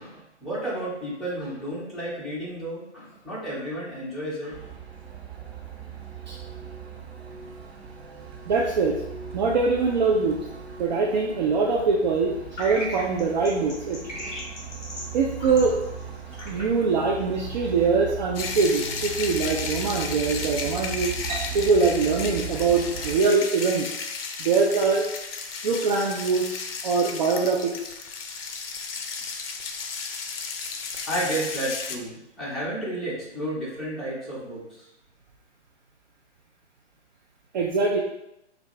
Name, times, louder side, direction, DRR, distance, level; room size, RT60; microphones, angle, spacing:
voice 1, 0.0-4.7 31.0-34.6, right 1 dB, ahead, -11 dB, 1.4 m, -32 dB
Truck, 4.5-23.2, right 7 dB, 60° right, 1.0 m, -38 dB
voice 2, 8.5-9.0 9.3-10.4 10.8-14.0 15.1-15.8 16.5-23.9 24.4-25.1 25.6-27.9 37.5-38.0, right 4 dB, 40° right, -1 dB, 0.5 m, -23 dB
sound 1, 12.6-17.9, left 1 dB, 20° left, 1.4 m, -38 dB
sound 2, 18.3-32.0, left 5 dB, 55° left, 0.6 m, -34 dB
4.8 x 2.5 x 3.2 m, 0.84 s
hypercardioid pair, 135°, 35 cm